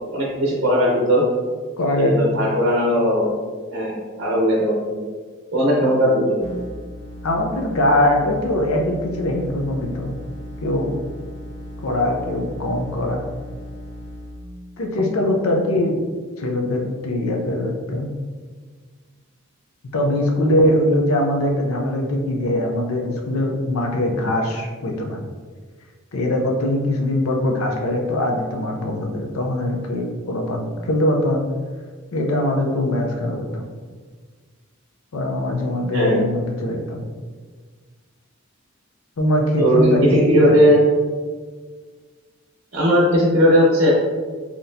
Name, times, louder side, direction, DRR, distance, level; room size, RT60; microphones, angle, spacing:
voice 1, 0.1-1.2 2.0-3.3 3.7-5.0 5.5-6.4 35.9-36.2 39.6-40.8 42.7-43.9, equal, 55° right, -4 dB, 0.7 m, -17 dB
voice 2, 1.8-2.5 7.2-10.2 10.6-11.0 11.8-13.2 14.8-16.0 16.4-18.1 19.9-25.2 26.1-31.4 32.1-33.6 35.1-37.0 39.2-40.6, left 1 dB, 85° left, 1 dB, 0.6 m, -22 dB
sound 1, 6.4-14.4, equal, 15° left, 0.6 m, -36 dB
4.0 x 2.9 x 2.6 m, 1.5 s
head